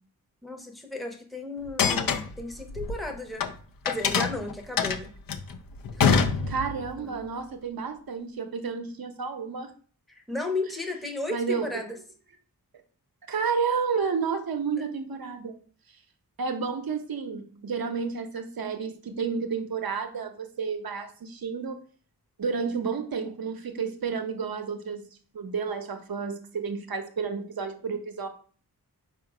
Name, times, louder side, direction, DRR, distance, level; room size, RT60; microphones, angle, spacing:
voice 1, 0.4-3.4 3.8-5.1 6.0-6.2 7.0-7.2 10.1-12.0, left 2 dB, ahead, 3 dB, 0.8 m, -34 dB
sound 1, 1.6-3.5 3.8-6.9, left 6 dB, 65° left, 0.5 m, -25 dB
voice 2, 6.5-9.7 11.3-11.7 13.3-15.6 16.4-21.8 22.4-25.0 25.3-28.3, right 5 dB, 65° right, 6 dB, 0.8 m, -31 dB
4.5 x 2.4 x 4.9 m, 0.42 s
cardioid pair, 55°, 38 cm